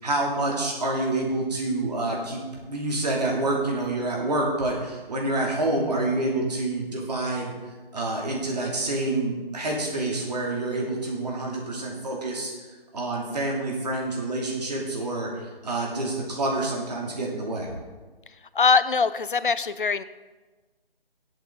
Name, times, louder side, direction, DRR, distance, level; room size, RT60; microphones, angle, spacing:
voice 1, 0.0-7.5 7.9-12.5 12.9-17.7, right 2 dB, 45° right, -1 dB, 2.7 m, -27 dB
voice 2, 18.5-20.0, left 5 dB, 60° left, 15 dB, 0.6 m, -22 dB
15.0 x 8.2 x 3.9 m, 1.3 s
figure-of-eight pair, 150°, 30 cm